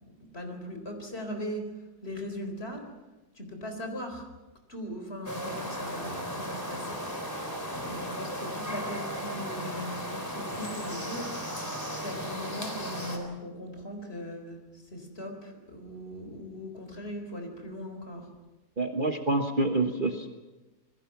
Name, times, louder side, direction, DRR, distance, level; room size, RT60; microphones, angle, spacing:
voice 1, 0.0-2.9 3.3-4.3 4.7-7.1 7.7-11.4 12.0-18.3, equal, 40° left, 4 dB, 4.4 m, -39 dB
sound 1, 5.2-13.2, equal, 10° left, 3.8 m, -36 dB
voice 2, 18.8-20.3, right 2 dB, 35° right, 4 dB, 1.3 m, -27 dB
28.0 x 21.0 x 6.0 m, 1.1 s
omnidirectional pair, 1.7 m